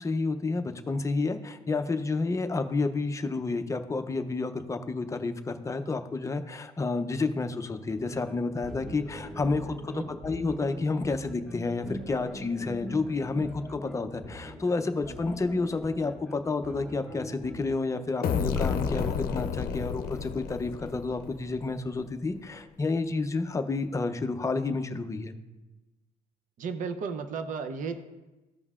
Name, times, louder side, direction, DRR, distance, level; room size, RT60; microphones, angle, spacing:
voice 1, 0.0-25.3, left 3 dB, 20° left, 7 dB, 0.5 m, -30 dB
sound 1, 7.9-17.6, equal, ahead, 1.0 m, -42 dB
sound 2, 18.2-21.9, left 6 dB, 60° left, 0.6 m, -31 dB
voice 2, 26.6-28.0, right 5 dB, 50° right, 8 dB, 0.6 m, -34 dB
14.5 x 5.3 x 2.4 m, 1.1 s
cardioid pair, 110°, 17 cm